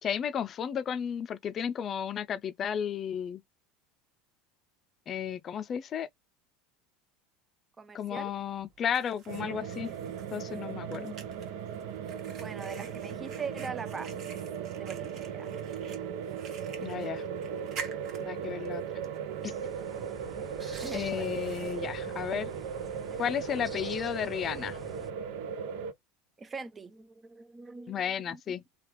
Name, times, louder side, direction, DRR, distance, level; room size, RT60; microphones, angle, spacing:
voice 1, 0.0-3.4 5.1-6.1 7.9-9.9 10.3-11.1 16.8-17.2 18.2-18.8 19.4-19.5 20.9-22.5 23.2-24.8 27.9-28.6, left 8 dB, 40° left, 0.5 m, -33 dB
voice 2, 7.8-8.3 12.3-14.2 14.8-15.5 20.8-21.3 26.4-28.0 28.3-28.4, right 5 dB, 25° right, 0.5 m, -42 dB
Fire, 8.2-23.2, right 5 dB, 50° right, 1.2 m, -50 dB
sound 1, 9.3-25.9, right 7 dB, 70° right, 0.6 m, -37 dB
sound 2, 19.3-25.1, equal, 5° right, 0.9 m, -48 dB
3.4 x 2.4 x 3.0 m
hypercardioid pair, 85°, 0 cm